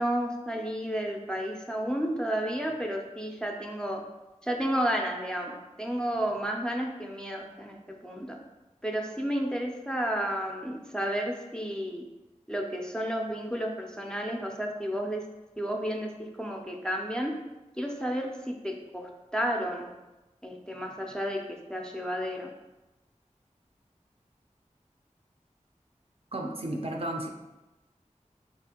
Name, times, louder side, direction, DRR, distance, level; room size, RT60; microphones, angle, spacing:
voice 1, 0.0-4.0 4.4-8.4 8.8-12.0 12.5-15.2 15.6-16.1 16.4-17.3 17.8-19.9 20.4-21.4 21.7-22.5, equal, 5° left, 1 dB, 0.4 m, -32 dB
voice 2, 26.3-27.3, right 1 dB, 50° right, 1 dB, 0.5 m, -33 dB
4.2 x 2.4 x 2.8 m, 1.0 s
wide cardioid pair, 55°, 13 cm